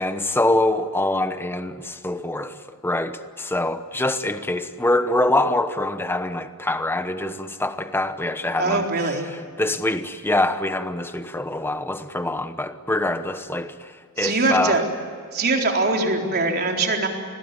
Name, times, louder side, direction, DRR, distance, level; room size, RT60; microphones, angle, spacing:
voice 1, 0.0-2.6 2.8-9.1 9.6-14.8, left 1 dB, 10° left, 1.0 m, -24 dB
voice 2, 8.6-9.2 14.2-14.8 15.3-17.1, right 3 dB, 45° right, 4.0 m, -22 dB
28.5 x 21.5 x 9.7 m
head